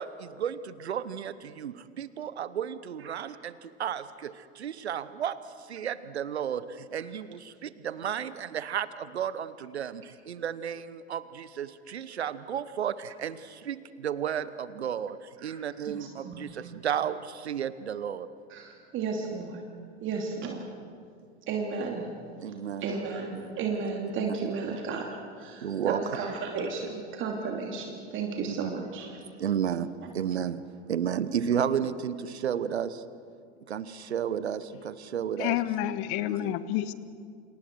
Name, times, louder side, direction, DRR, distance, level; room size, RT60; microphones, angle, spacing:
voice 1, 0.0-18.3 22.4-22.9 23.4-23.5 25.6-26.0 28.5-28.7 29.4-30.6 30.9-33.0 33.7-35.6 36.3-36.6, right 8 dB, 75° right, 16 dB, 1.1 m, -33 dB
voice 2, 15.4-16.5 18.5-19.6 20.0-20.7 21.5-22.1 22.5-22.6 22.8-25.1 25.4-29.4, right 5 dB, 35° right, 1 dB, 2.7 m, -34 dB
voice 3, 35.4-36.9, left 13 dB, 45° left, 15 dB, 1.2 m, -29 dB
29.5 x 27.5 x 4.7 m, 2.2 s
figure-of-eight pair, 85°, 33 cm